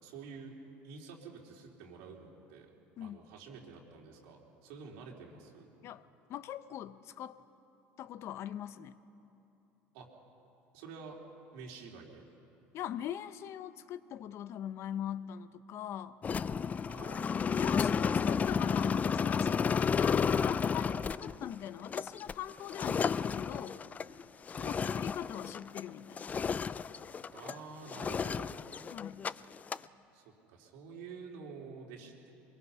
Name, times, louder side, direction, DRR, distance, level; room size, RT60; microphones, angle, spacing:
voice 1, 0.0-0.5 0.8-2.7 3.0-5.7 9.9-10.1 10.7-11.2 11.5-12.3 16.9-17.4 24.6-25.0 27.3-28.6 30.1-32.3, right 5 dB, 80° right, -1 dB, 3.8 m, -49 dB
voice 2, 6.3-7.4 8.0-9.0 12.7-16.2 16.4-16.6 17.5-20.8 21.2-23.8 24.6-26.3 28.9-29.3, left 10 dB, 55° left, 14 dB, 0.8 m, -41 dB
sound 1, 16.2-25.9 26.2-27.6 27.9-29.3 29.6-29.8, left 6 dB, 25° left, 0.4 m, -32 dB
24.0 x 22.0 x 5.7 m, 2.9 s
supercardioid pair, 95°, 6 cm